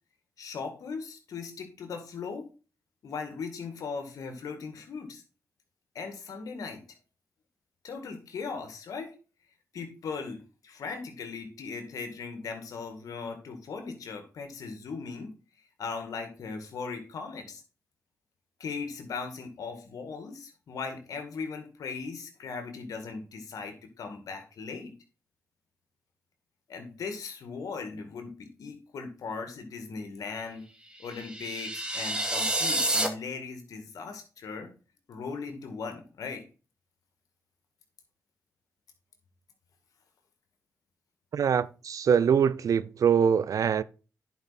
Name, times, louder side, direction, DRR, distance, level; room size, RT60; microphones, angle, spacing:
voice 1, 0.4-2.5 3.0-5.2 5.9-6.8 7.8-9.2 9.7-15.3 15.8-17.6 18.6-24.9 26.7-30.7 31.0-34.7 35.1-36.4, left 5 dB, 80° left, 2.2 m, -38 dB
sound 1, 31.0-33.1, right 1 dB, 15° right, 2.3 m, -29 dB
voice 2, 41.3-43.8, right 7 dB, 70° right, 0.6 m, -23 dB
10.5 x 5.5 x 4.3 m
cardioid pair, 55°, 6 cm